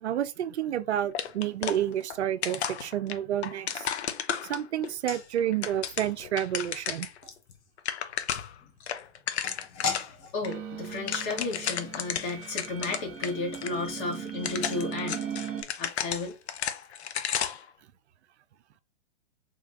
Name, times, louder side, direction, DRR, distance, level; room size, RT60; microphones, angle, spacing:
voice 1, 0.0-3.9 4.5-7.1, right 11 dB, 65° right, 0.5 m, -30 dB
sound 1, 1.1-2.2 2.4-4.9 5.4-7.2 7.5-7.6 7.8-8.6 8.9-10.1 10.4-10.5 10.8-13.3 13.6-13.7 14.3-17.7, left 9 dB, 65° left, 0.7 m, -33 dB
sound 2, 4.8-16.0 16.3-16.4 16.7-16.9, left 5 dB, 15° left, 0.3 m, -42 dB
voice 2, 9.8-15.3 15.8-16.3, left 3 dB, 45° left, 1.7 m, -34 dB
sound 3, 10.4-15.6, right 8 dB, 35° right, 1.2 m, -38 dB
3.8 x 3.2 x 2.4 m
figure-of-eight pair, 110°, 36 cm